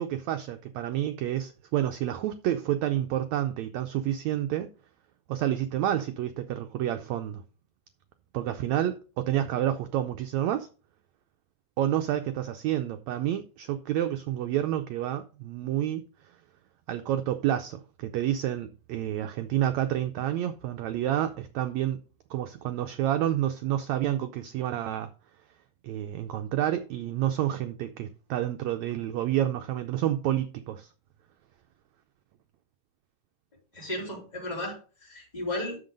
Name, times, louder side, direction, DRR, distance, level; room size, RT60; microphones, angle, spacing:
voice 1, 0.0-4.7 5.3-7.4 8.3-10.7 11.8-16.0 16.9-22.0 22.3-25.1 25.8-30.9, right 12 dB, 90° right, 1.5 m, -29 dB
voice 2, 33.7-35.8, left 1 dB, 10° left, 3.0 m, -34 dB
7.7 x 6.6 x 5.2 m
omnidirectional pair, 3.9 m